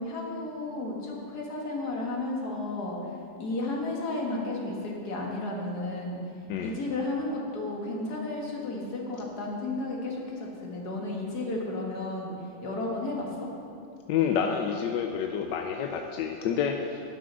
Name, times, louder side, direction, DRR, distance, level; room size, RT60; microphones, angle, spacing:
voice 1, 0.0-3.0 3.4-6.2 6.6-12.4 12.6-13.5, left 2 dB, 50° left, -2 dB, 2.0 m, -33 dB
voice 2, 14.1-17.0, left 7 dB, 75° left, 3 dB, 1.1 m, -28 dB
11.5 x 6.0 x 6.2 m, 2.6 s
omnidirectional pair, 2.3 m